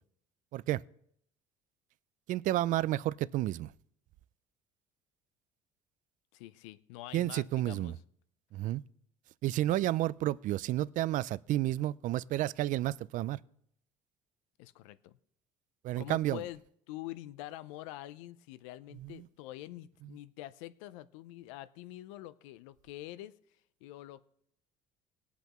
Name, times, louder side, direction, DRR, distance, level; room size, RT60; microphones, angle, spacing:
voice 1, 2.3-3.7 7.1-7.9 8.5-8.8 9.4-13.4 15.8-16.4 19.0-19.3, right 15 dB, 55° right, 0.4 m, -31 dB
voice 2, 6.3-7.9 14.6-15.2 16.0-16.6 16.9-23.3 23.8-24.3, left 15 dB, 90° left, 0.5 m, -45 dB
18.5 x 8.2 x 3.0 m
supercardioid pair, 85°, 16 cm